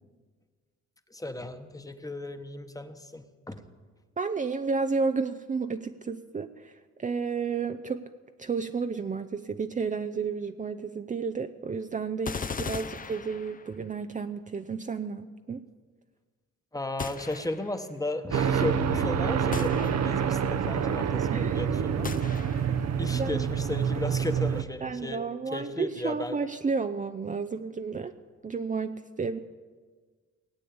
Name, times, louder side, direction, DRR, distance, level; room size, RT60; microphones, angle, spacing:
voice 1, 1.1-3.6 12.8-12.9 16.7-22.5 23.0-25.2 25.5-26.4, left 2 dB, 10° left, 8 dB, 1.3 m, -35 dB
voice 2, 4.2-8.0 8.4-15.6 21.3-21.6 23.1-23.5 24.8-28.1 28.4-29.4, right 5 dB, 25° right, 8 dB, 0.6 m, -32 dB
sound 1, 12.2-13.9 17.0-17.9 19.5-20.4 22.0-22.9, left 5 dB, 30° left, 0.7 m, -38 dB
sound 2, 18.3-24.6, right 7 dB, 60° right, 0.9 m, -27 dB
18.5 x 8.5 x 8.7 m, 1.5 s
cardioid pair, 90°, 30 cm